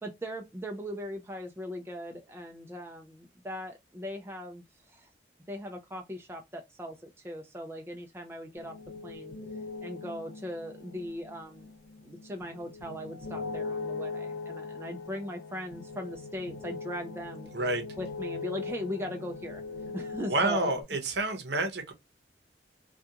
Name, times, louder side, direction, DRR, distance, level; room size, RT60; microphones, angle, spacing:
voice 1, 0.0-5.1 5.5-7.0 7.2-8.8 9.0-9.3 9.8-11.7 12.0-17.5 18.0-19.6 19.9-20.7, equal, 15° right, 0.3 m, -39 dB
sound 1, 8.5-20.8, left 4 dB, 85° left, 0.7 m, -40 dB
voice 2, 20.3-21.9, right 2 dB, 75° right, 0.7 m, -29 dB
2.4 x 2.3 x 2.7 m
head